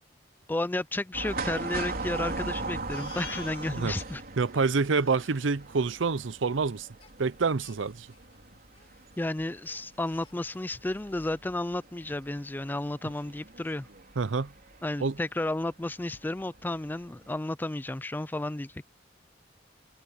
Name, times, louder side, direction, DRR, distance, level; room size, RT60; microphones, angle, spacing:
voice 1, 0.5-4.2 9.2-13.9 14.8-18.8, left 1 dB, 10° left, 0.4 m, -32 dB
sound 1, 1.1-15.2 15.5-15.6 16.6-16.9 17.2-17.3, right 3 dB, 55° right, 4.0 m, -39 dB
Crying sobbing, 2.9-4.1 4.5-4.6 4.8-5.2 7.0-7.1 7.6-8.4 8.7-8.9 9.2-9.3 9.7-10.4, left 6 dB, 30° left, 2.5 m, -48 dB
voice 2, 4.4-6.9 7.2-8.1 14.2-14.5 15.0-15.2, right 4 dB, 85° right, 0.7 m, -27 dB
head